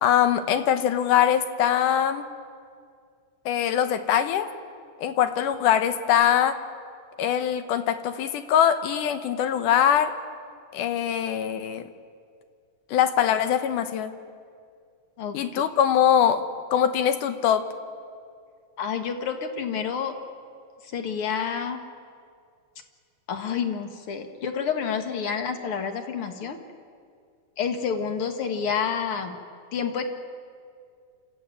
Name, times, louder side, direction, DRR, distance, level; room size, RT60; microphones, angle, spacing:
voice 1, 0.0-2.2 3.5-4.5 5.0-6.6 7.2-10.1 10.7-11.8 12.9-14.1 15.3-16.5 16.7-17.7, left 9 dB, 75° left, 9 dB, 2.5 m, -22 dB
voice 2, 15.2-15.6 18.8-20.1 20.9-21.8 23.3-26.6 27.6-29.4 29.7-30.0, left 6 dB, 50° left, 6 dB, 1.9 m, -29 dB
28.0 x 14.0 x 9.1 m, 2.2 s
omnidirectional pair, 3.8 m